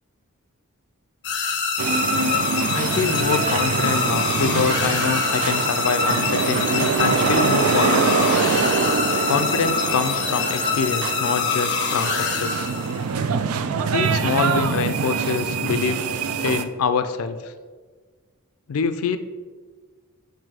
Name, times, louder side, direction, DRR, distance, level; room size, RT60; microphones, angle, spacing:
sound 1, 1.2-13.1, left 5 dB, 55° left, 0.8 m, -25 dB
sound 2, 1.8-16.6, right 5 dB, 80° right, 0.4 m, -24 dB
voice 1, 2.7-8.1 9.3-12.7 13.9-16.0 16.4-17.5 18.7-19.2, left 5 dB, 85° left, 10 dB, 0.4 m, -25 dB
7.5 x 2.6 x 4.8 m, 1.5 s
head